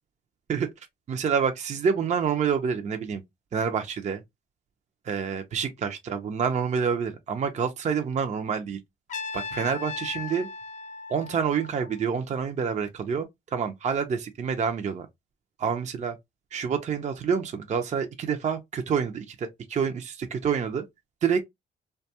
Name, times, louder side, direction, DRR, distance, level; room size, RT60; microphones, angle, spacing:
voice 1, 1.1-3.2 3.5-4.2 5.1-8.8 9.3-10.5 11.1-13.3 13.5-15.1 15.6-16.1 16.5-20.8 21.2-21.4, right 6 dB, 35° right, 0.5 m, -27 dB
Trumpet, 9.1-12.1, left 5 dB, 40° left, 0.4 m, -37 dB
2.5 x 2.2 x 2.7 m
cardioid pair, 90°, 20 cm